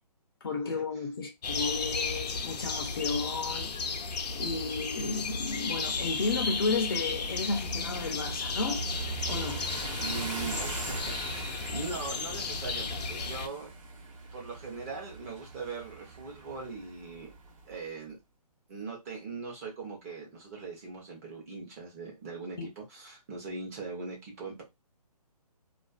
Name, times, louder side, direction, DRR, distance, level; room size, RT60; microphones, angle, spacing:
voice 1, 0.4-3.8 4.1-8.9 9.3-9.7 22.6-22.7, left 4 dB, 35° left, 0.5 m, -33 dB
sound 1, 1.4-13.5, left 4 dB, 80° left, 0.6 m, -34 dB
sound 2, 5.7-17.8, right 4 dB, 50° right, 1.1 m, -42 dB
voice 2, 10.0-13.7 14.3-17.3 17.7-18.2 18.7-24.6, right 4 dB, 25° right, 0.7 m, -40 dB
2.4 x 2.4 x 2.3 m
hypercardioid pair, 160°, 21 cm